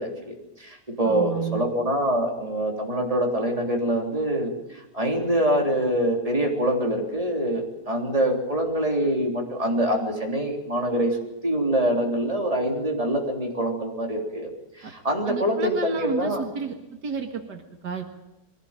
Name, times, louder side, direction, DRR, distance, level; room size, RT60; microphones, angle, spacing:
voice 1, 0.0-11.2 11.4-16.4, right 1 dB, 20° right, 1 dB, 3.7 m, -25 dB
voice 2, 1.0-1.6 14.8-14.9 15.3-18.1, right 5 dB, 75° right, 5 dB, 2.3 m, -31 dB
22.5 x 16.5 x 9.0 m, 0.94 s
omnidirectional pair, 1.8 m